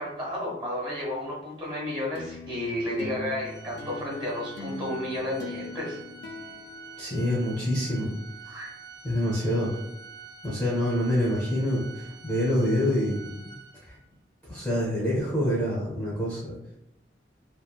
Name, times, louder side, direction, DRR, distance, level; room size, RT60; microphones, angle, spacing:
voice 1, 0.0-6.0 8.4-8.7, left 1 dB, 25° right, -4 dB, 0.8 m, -32 dB
sound 1, 2.1-7.8, left 2 dB, 75° left, 0.3 m, -42 dB
Organ, 3.4-14.1, right 5 dB, 85° right, 0.5 m, -46 dB
voice 2, 7.0-8.1 9.0-9.7 10.4-13.4 13.8-14.0 14.5-16.6, equal, 10° left, -6 dB, 0.6 m, -26 dB
2.9 x 2.0 x 2.3 m, 0.82 s
head